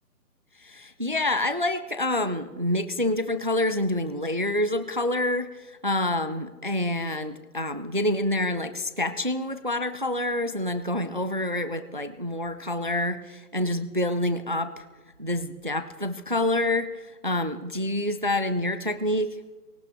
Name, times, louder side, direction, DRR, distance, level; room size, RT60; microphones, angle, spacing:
voice 1, 0.6-14.9 15.2-19.4, left 1 dB, 35° right, 11 dB, 0.4 m, -27 dB
19.0 x 18.0 x 3.5 m, 1.2 s
figure-of-eight pair, 150°, 47 cm